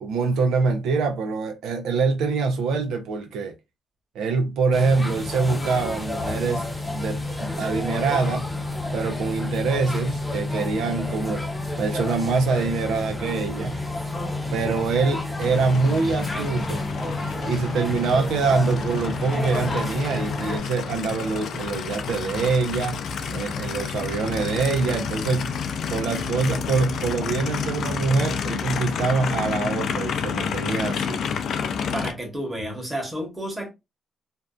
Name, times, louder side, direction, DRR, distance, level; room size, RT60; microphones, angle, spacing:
voice 1, 0.0-3.5 4.1-6.7 6.9-8.5 8.9-11.4 11.8-13.8 14.5-16.9 17.4-23.0 23.3-25.5 25.9-31.2, right 4 dB, 90° right, 0.5 m, -24 dB
sound 1, 4.7-20.6, left 2 dB, 10° left, 0.6 m, -30 dB
Aircraft, 15.4-32.1, left 6 dB, 60° left, 0.4 m, -30 dB
voice 2, 31.9-33.7, equal, 10° right, 1.0 m, -31 dB
2.5 x 2.2 x 2.3 m
cardioid pair, 130°, 0 cm